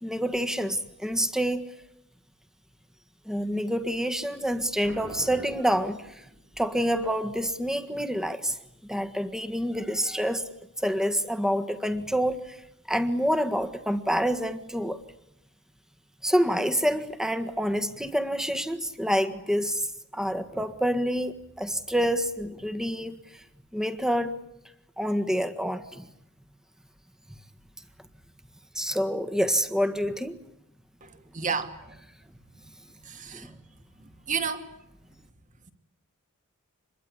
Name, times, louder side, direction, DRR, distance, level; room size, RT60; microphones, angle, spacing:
voice 1, 0.0-1.7 3.2-6.2 6.6-8.6 8.9-10.5 10.8-12.6 12.9-15.0 16.2-19.9 20.1-23.4 23.7-24.3 25.0-26.1 28.7-30.4 33.3-33.5, equal, 5° right, 1.6 m, -27 dB
Boom, 4.8-6.7, right 1 dB, 55° right, 5.9 m, -43 dB
voice 2, 31.3-31.9 33.1-33.5 34.3-34.6, right 6 dB, 35° right, 2.4 m, -31 dB
26.5 x 22.0 x 9.9 m
head